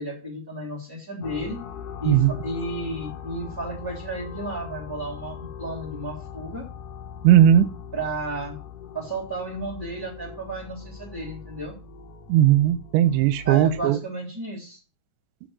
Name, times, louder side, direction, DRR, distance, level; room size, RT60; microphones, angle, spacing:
voice 1, 0.0-1.6 2.0-6.6 7.9-8.6 8.9-11.8 13.4-14.8, right 2 dB, 5° right, -2 dB, 2.0 m, -33 dB
sound 1, 1.2-13.9, left 6 dB, 70° left, 1.9 m, -40 dB
voice 2, 7.2-7.7 12.3-14.0, right 11 dB, 85° right, 10 dB, 2.9 m, -17 dB
8.8 x 5.2 x 7.4 m, 0.34 s
omnidirectional pair, 5.2 m